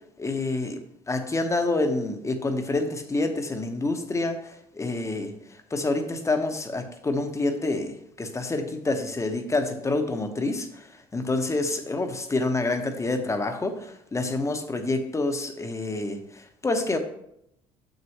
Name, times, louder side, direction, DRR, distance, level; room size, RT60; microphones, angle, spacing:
voice 1, 0.2-0.8 1.1-5.3 5.7-10.8 11.1-17.0, left 2 dB, 20° left, 7 dB, 1.0 m, -27 dB
6.6 x 6.4 x 3.1 m, 0.76 s
supercardioid pair, 75°, 14 cm